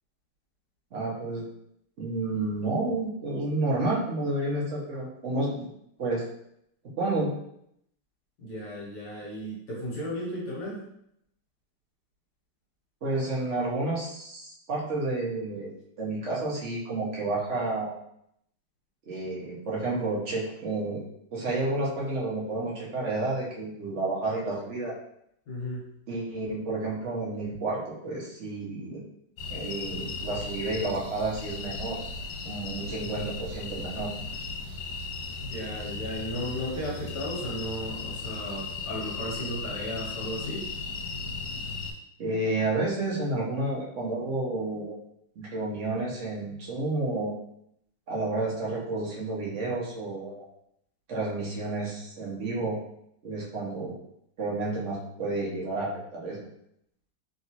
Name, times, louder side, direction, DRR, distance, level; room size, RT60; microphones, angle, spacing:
voice 1, 0.9-1.5 2.0-5.7 6.0-6.2 7.0-7.3 13.0-15.7 16.0-18.0 19.1-21.0 21.3-24.9 26.1-29.0 29.5-32.0 32.4-34.1 42.2-45.0 45.4-47.4 48.1-50.4 51.1-52.8 53.2-53.9 54.4-56.4, right 2 dB, 60° right, -4 dB, 0.8 m, -30 dB
voice 2, 8.4-10.9 25.5-25.9 35.4-40.7, equal, 60° left, -4 dB, 1.3 m, -35 dB
sound 1, 29.4-41.9, left 4 dB, 85° left, 1.6 m, -36 dB
3.2 x 2.9 x 2.8 m, 0.74 s
omnidirectional pair, 2.3 m